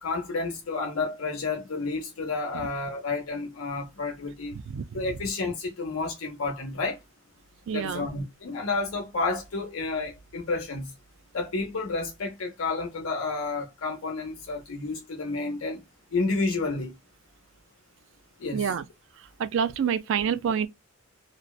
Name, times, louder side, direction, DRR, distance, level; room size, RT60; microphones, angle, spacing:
voice 1, 0.0-4.6 4.9-7.0 7.7-10.9 11.3-15.8 16.1-16.9 18.4-18.6, left 3 dB, 75° left, 0.7 m, -30 dB
voice 2, 4.5-5.0 7.7-8.1 18.5-18.9 19.4-20.7, right 7 dB, 60° right, 0.3 m, -28 dB
2.7 x 2.1 x 2.2 m
head